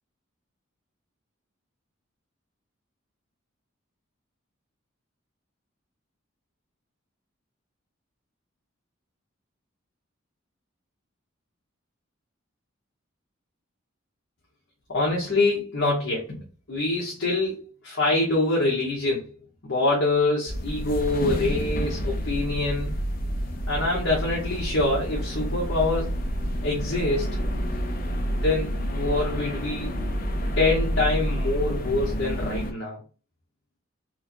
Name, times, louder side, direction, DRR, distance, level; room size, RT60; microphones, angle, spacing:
voice 1, 14.9-16.4 16.7-19.3 19.6-23.0 23.7-26.2 26.6-27.4 28.4-29.9 30.6-33.0, left 2 dB, 65° left, 1.1 m, -25 dB
sound 1, 20.5-32.7, equal, 45° left, 0.6 m, -29 dB
4.4 x 2.2 x 2.8 m
head